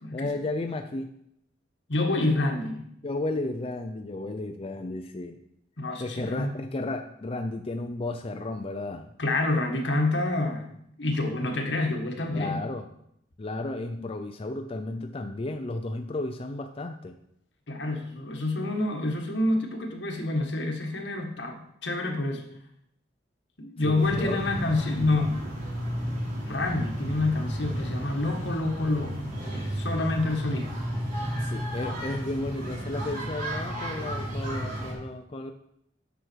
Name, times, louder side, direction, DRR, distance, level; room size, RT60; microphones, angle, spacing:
voice 1, 0.1-1.1 3.0-5.4 6.0-9.1 12.3-12.9 13.4-17.1 23.8-24.4 31.4-35.5, left 2 dB, 30° left, 5 dB, 0.5 m, -33 dB
voice 2, 1.9-2.8 5.8-6.5 9.2-12.6 17.7-22.4 23.6-25.4 26.5-29.2 29.5-30.7, left 2 dB, 75° left, 3 dB, 1.6 m, -28 dB
sound 1, 24.0-34.9, equal, 50° right, 3.6 m, -33 dB
10.0 x 6.4 x 4.6 m, 0.75 s
head